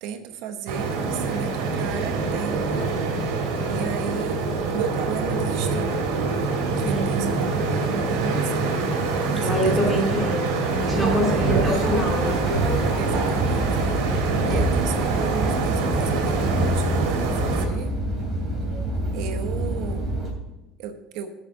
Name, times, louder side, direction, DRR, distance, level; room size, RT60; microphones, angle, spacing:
voice 1, 0.0-2.9 3.7-4.4 4.7-6.1 6.8-8.8 9.3-10.1 11.1-11.5 12.9-13.9 14.4-17.9 19.1-20.1 20.8-21.3, right 8 dB, 65° right, 8 dB, 0.9 m, -34 dB
sound 1, 0.7-17.7, right 3 dB, 85° right, 2.6 m, -25 dB
voice 2, 6.8-7.2 9.4-10.4 10.8-12.4, equal, 10° left, -1 dB, 2.6 m, -25 dB
sound 2, 8.3-16.6, left 3 dB, 60° left, 2.0 m, -41 dB
sound 3, 10.7-20.3, right 1 dB, 30° right, 3.1 m, -27 dB
7.3 x 6.9 x 8.1 m, 0.96 s
cardioid pair, 150°, 0 cm